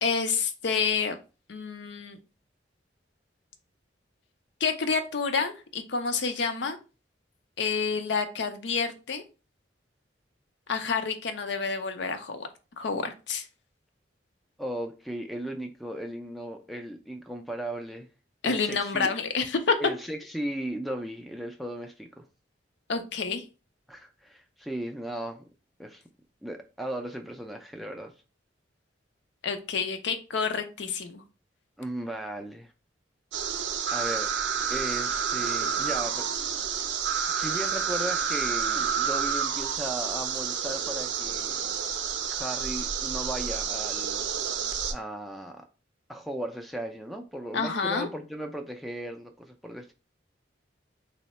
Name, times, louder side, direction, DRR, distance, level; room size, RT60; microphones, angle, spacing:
voice 1, 0.0-1.2 1.5-2.2 4.6-6.8 7.6-9.2 10.7-12.5 12.8-13.5 18.4-19.8 22.9-23.4 29.4-31.2 47.5-48.1, left 5 dB, 70° left, 0.5 m, -28 dB
voice 2, 14.6-18.1 18.4-19.1 19.8-22.2 23.9-25.4 25.8-26.0 26.4-28.1 31.8-32.7 33.9-34.3 34.7-36.3 37.3-41.6 42.3-44.3 44.9-45.6 46.1-49.9, right 1 dB, ahead, 0.3 m, -36 dB
sound 1, 33.3-44.9, right 7 dB, 70° right, 0.4 m, -29 dB
3.6 x 2.1 x 4.1 m
head